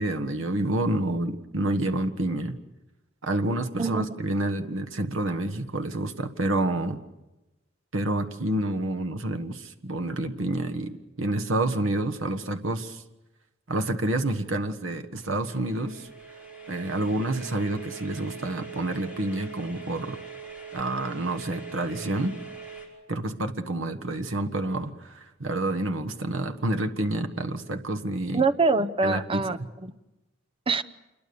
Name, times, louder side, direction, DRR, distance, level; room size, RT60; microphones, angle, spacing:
voice 1, 0.0-2.6 3.2-7.0 7.9-13.0 13.7-16.1 16.7-20.2 20.7-22.4 23.1-28.4 29.0-29.4, right 1 dB, 75° right, 7 dB, 1.4 m, -28 dB
sound 1, 15.2-22.9, right 5 dB, 5° right, 5.3 m, -42 dB
voice 2, 28.3-29.9 30.7-30.8, right 3 dB, 25° right, 10 dB, 0.8 m, -25 dB
27.5 x 22.0 x 7.0 m, 1.0 s
head